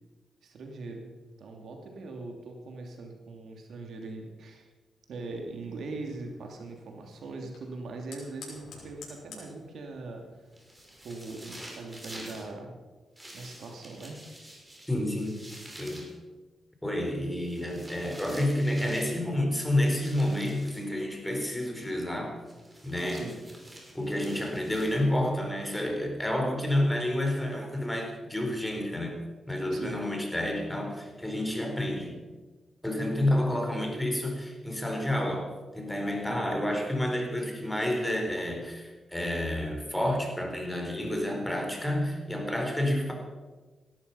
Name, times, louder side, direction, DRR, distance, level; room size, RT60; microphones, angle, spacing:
voice 1, 0.4-1.1 1.4-4.7 5.1-10.2 11.0-12.8 13.3-14.2 18.3-18.5 23.1-23.4 29.7-30.0 36.2-36.5, right 3 dB, 75° right, 2 dB, 2.9 m, -41 dB
Fire, 5.2-12.4, left 4 dB, 85° left, 5.6 m, -53 dB
sound 1, 10.5-12.5 13.2-16.1 17.4-19.2 19.9-20.9 22.5-25.3, right 1 dB, 15° right, 5.6 m, -48 dB
voice 2, 14.9-15.4 15.8-16.1 16.8-22.4 22.8-23.3 23.9-29.2 29.5-32.2 32.8-43.1, left 1 dB, 10° left, 2 dB, 4.2 m, -29 dB
17.0 x 12.5 x 5.7 m, 1.3 s
cardioid pair, 70°, 0 cm